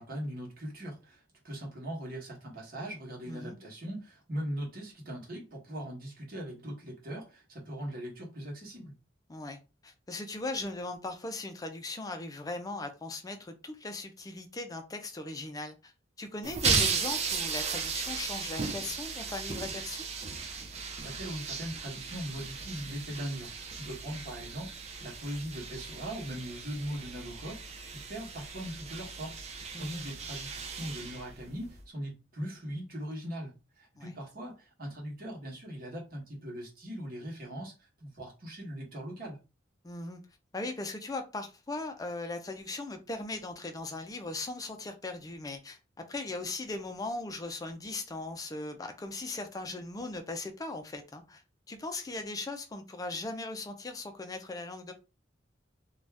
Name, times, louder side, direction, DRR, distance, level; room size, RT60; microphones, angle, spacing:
voice 1, 0.0-8.9 21.0-39.4, equal, 50° right, 1.2 m, -40 dB
voice 2, 9.3-15.9 16.2-20.0 24.0-24.2 29.7-30.1 34.0-34.1 39.8-40.2 40.5-45.8 46.1-51.4 51.7-54.9, left 2 dB, 20° left, 0.4 m, -39 dB
sound 1, 16.4-31.8, right 5 dB, 35° right, 0.5 m, -36 dB
2.6 x 2.3 x 3.3 m
head